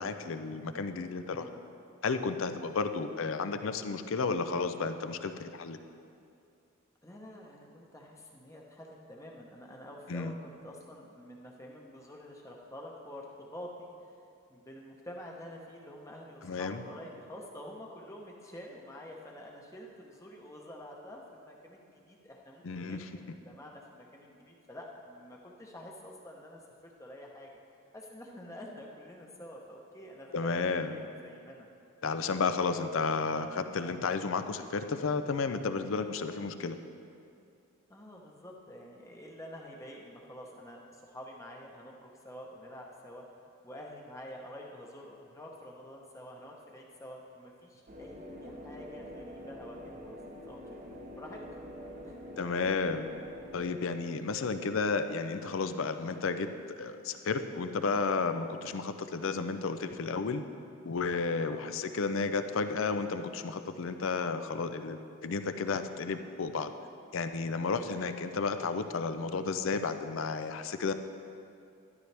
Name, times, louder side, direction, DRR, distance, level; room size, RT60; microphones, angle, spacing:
voice 1, 0.0-1.5 2.0-5.8 10.1-10.3 16.4-16.8 22.6-23.4 30.3-31.0 32.0-36.8 52.4-53.1 53.5-56.5 56.8-60.4 60.8-66.7 67.1-70.9, left 4 dB, 70° left, 9 dB, 0.5 m, -32 dB
voice 2, 1.3-1.6 7.0-14.2 14.5-27.5 27.9-31.7 37.9-43.2 43.6-50.2 50.5-51.7 52.0-52.2 61.4-61.8, left 1 dB, 15° left, -1 dB, 0.9 m, -48 dB
sound 1, 47.9-53.8, equal, 35° right, 0.9 m, -46 dB
12.0 x 11.0 x 3.4 m, 2.5 s
head